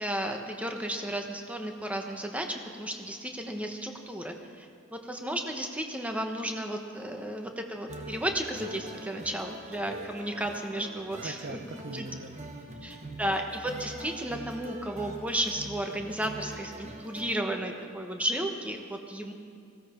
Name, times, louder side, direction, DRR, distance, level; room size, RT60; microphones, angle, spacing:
voice 1, 0.0-11.6 11.9-12.1 12.8-19.3, right 1 dB, 5° right, 3 dB, 1.1 m, -33 dB
sound 1, 7.9-17.4, right 1 dB, 35° right, 1.5 m, -43 dB
voice 2, 11.2-13.2, right 3 dB, 55° right, 8 dB, 0.9 m, -43 dB
19.0 x 15.5 x 4.5 m, 2.4 s
head